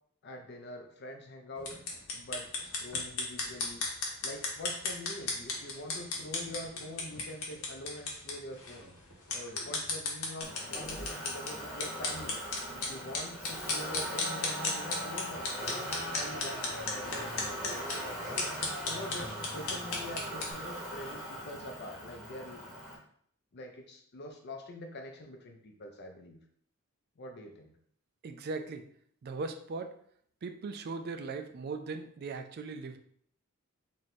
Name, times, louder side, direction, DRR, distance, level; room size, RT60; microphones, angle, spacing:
voice 1, 0.2-1.8 2.1-3.8 4.2-8.9 9.3-12.4 12.7-15.7 16.1-18.3 18.9-22.6 23.5-26.4 27.2-27.7, left 1 dB, 50° left, 4 dB, 0.5 m, -45 dB
sound 1, 1.6-20.5, left 3 dB, 85° left, 1.0 m, -37 dB
Motor vehicle (road), 10.4-22.9, equal, ahead, 0.9 m, -40 dB
voice 2, 28.2-28.8 29.2-30.0 30.4-33.0, right 4 dB, 45° right, 7 dB, 0.3 m, -39 dB
3.1 x 2.6 x 4.1 m, 0.63 s
head